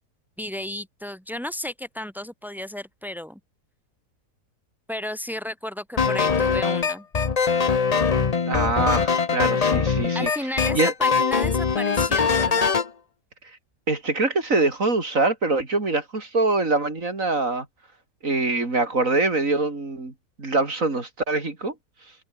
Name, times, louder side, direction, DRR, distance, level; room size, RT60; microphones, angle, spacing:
voice 1, 0.4-3.4 4.9-7.0 10.1-12.8, left 1 dB, ahead, 6.8 m, -33 dB
sound 1, 6.0-12.9, left 5 dB, 35° left, 0.7 m, -22 dB
voice 2, 8.5-10.3 10.7-10.9 13.9-17.7 18.2-20.1 20.4-21.7, right 3 dB, 55° right, 4.3 m, -24 dB
omnidirectional pair, 1.7 m